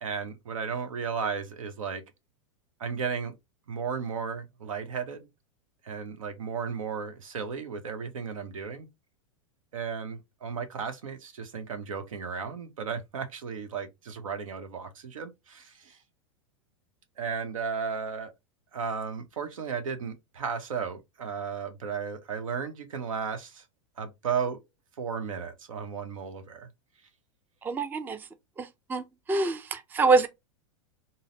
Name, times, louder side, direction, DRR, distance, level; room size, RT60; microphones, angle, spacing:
voice 1, 0.0-2.0 2.8-3.3 3.7-5.3 5.8-8.9 9.7-16.0 17.2-18.3 18.7-23.6 24.0-24.6 25.0-26.7, right 6 dB, 85° right, 0.8 m, -34 dB
voice 2, 27.6-28.2 28.6-30.3, right 3 dB, 10° right, 0.4 m, -26 dB
4.0 x 2.0 x 3.7 m
hypercardioid pair, 110°, 17 cm